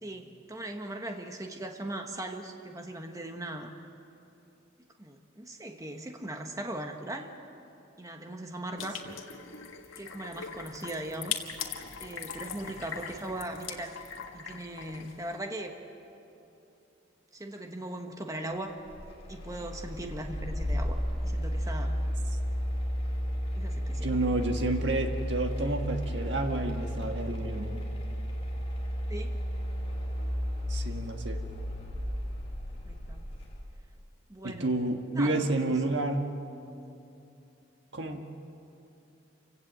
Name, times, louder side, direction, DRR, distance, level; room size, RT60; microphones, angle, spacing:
voice 1, 0.0-3.7 5.0-7.3 8.0-9.0 10.0-11.4 12.0-13.9 14.3-15.8 17.3-18.7 19.3-22.0 23.5-24.1 29.1-29.4 32.9-33.3 34.3-34.7 35.1-35.4 35.8-35.9, right 1 dB, 15° right, 4 dB, 1.3 m, -39 dB
sound 1, 8.8-15.4, left 7 dB, 85° left, 1.7 m, -40 dB
sound 2, 18.9-33.6, equal, 35° left, 3.9 m, -33 dB
voice 2, 24.0-27.8 30.7-31.4 34.4-36.3 37.9-38.2, right 2 dB, 60° right, 4 dB, 1.7 m, -30 dB
28.5 x 17.0 x 7.7 m, 2.8 s
head